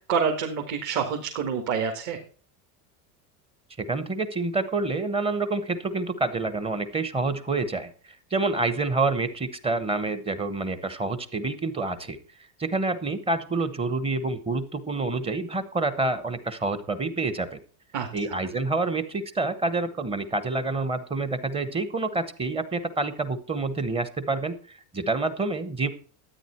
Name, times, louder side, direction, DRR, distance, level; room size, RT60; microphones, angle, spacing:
voice 1, 0.0-2.2 17.9-18.4, right 6 dB, 40° right, 1 dB, 2.0 m, -27 dB
voice 2, 3.8-7.9 8.3-12.2 12.6-17.6 18.1-25.9, right 3 dB, 15° right, 12 dB, 0.9 m, -27 dB
12.5 x 9.4 x 4.4 m, 0.43 s
cardioid pair, 160°, 44 cm